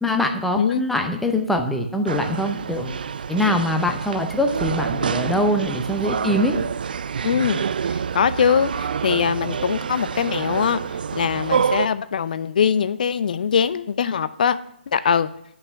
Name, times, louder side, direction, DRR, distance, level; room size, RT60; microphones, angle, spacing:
voice 1, 0.0-3.0 3.3-6.6, left 1 dB, ahead, 4 dB, 0.7 m, -23 dB
sound 1, 2.1-11.9, right 7 dB, 55° right, 0.3 m, -27 dB
voice 2, 7.2-7.6 7.9-14.6 14.9-15.3, left 7 dB, 45° left, 14 dB, 0.5 m, -22 dB
9.7 x 5.5 x 5.7 m, 0.74 s
figure-of-eight pair, 140°, 6 cm